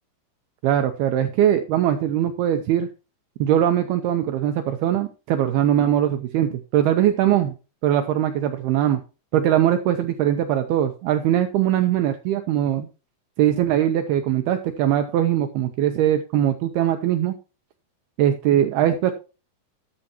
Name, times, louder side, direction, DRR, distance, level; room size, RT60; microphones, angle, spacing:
voice 1, 0.6-2.9 3.4-7.5 7.8-9.0 9.3-12.9 13.4-17.4 18.2-19.1, right 11 dB, 90° right, 7 dB, 2.3 m, -21 dB
13.0 x 9.9 x 2.9 m, 0.32 s
omnidirectional pair, 5.5 m